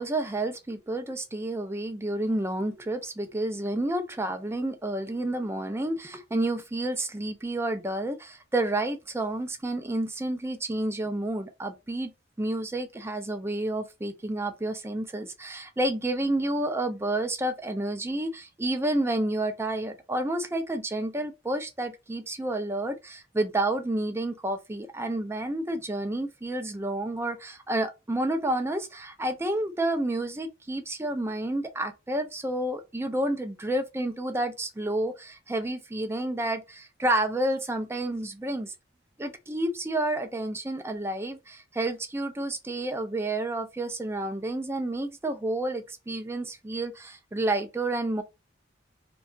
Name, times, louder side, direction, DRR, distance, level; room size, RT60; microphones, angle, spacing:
voice 1, 0.0-12.1 12.4-38.7 39.2-48.2, right 1 dB, 15° right, 0.4 m, -30 dB
2.8 x 2.2 x 2.5 m
head